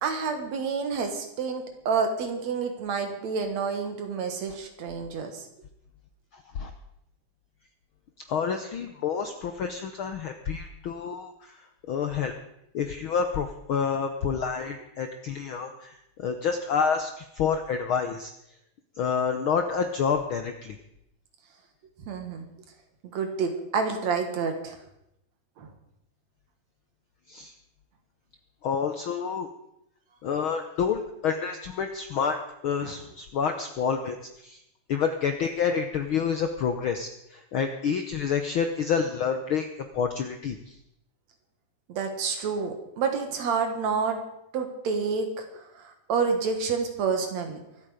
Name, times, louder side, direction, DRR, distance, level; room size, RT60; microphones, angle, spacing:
voice 1, 0.0-5.4 22.1-22.5 23.1-24.8 25.6-25.7 32.8-33.0 41.9-44.2 44.5-45.5 45.8-47.6, right 5 dB, 65° right, 5 dB, 2.8 m, -29 dB
voice 2, 8.3-11.5 11.9-12.3 12.7-18.3 19.0-20.8 27.3-27.5 28.6-29.5 30.2-34.2 34.4-34.6 34.9-40.6, left 6 dB, 70° left, 6 dB, 1.2 m, -28 dB
23.5 x 8.7 x 5.0 m, 0.81 s
omnidirectional pair, 3.5 m